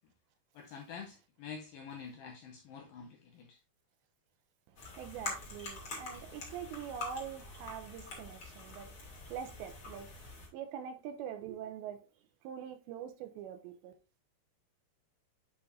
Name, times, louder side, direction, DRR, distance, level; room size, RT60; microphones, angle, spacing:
voice 1, 0.6-3.6, left 6 dB, 85° left, 2.0 m, -47 dB
sound 1, 4.8-10.5, left 3 dB, 40° left, 2.4 m, -45 dB
voice 2, 4.8-12.1 12.4-13.9, right 8 dB, 90° right, 3.0 m, -44 dB
8.1 x 5.6 x 2.5 m
omnidirectional pair, 5.0 m